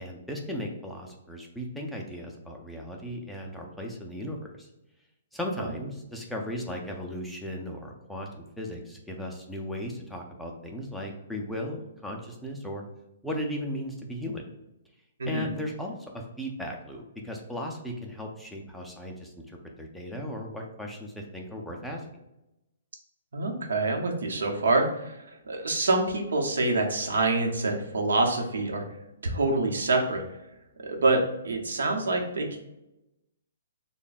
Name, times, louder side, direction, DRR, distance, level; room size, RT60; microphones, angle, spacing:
voice 1, 0.0-4.7 5.3-12.8 13.2-14.4 15.2-22.0, left 1 dB, ahead, -1 dB, 0.4 m, -36 dB
voice 2, 15.2-15.5 23.3-25.1 25.5-28.8 29.2-30.2 30.8-32.6, right 2 dB, 90° right, 2 dB, 0.8 m, -26 dB
3.3 x 2.2 x 3.9 m, 0.91 s
hypercardioid pair, 175°, 0 cm